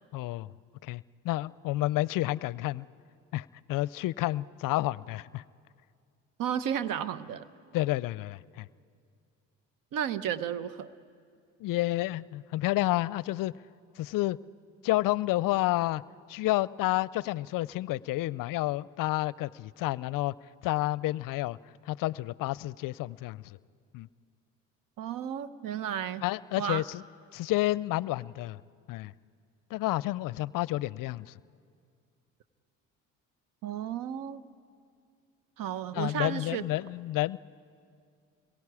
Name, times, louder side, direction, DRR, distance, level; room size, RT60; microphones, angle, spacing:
voice 1, 0.1-0.5 0.8-2.9 3.3-5.4 7.7-8.7 11.6-13.5 14.0-14.4 14.8-16.0 16.3-20.3 20.6-21.6 21.9-23.4 23.9-24.1 26.2-27.0 27.3-28.6 28.9-29.1 29.7-31.3 35.9-37.4, left 17 dB, 65° left, 21 dB, 0.5 m, -30 dB
voice 2, 6.4-7.5 9.9-10.9 25.0-26.2 26.6-26.8 33.6-34.4 35.6-36.6, right 9 dB, 65° right, 15 dB, 0.9 m, -33 dB
29.0 x 23.0 x 4.8 m, 2.2 s
supercardioid pair, 65°, 36 cm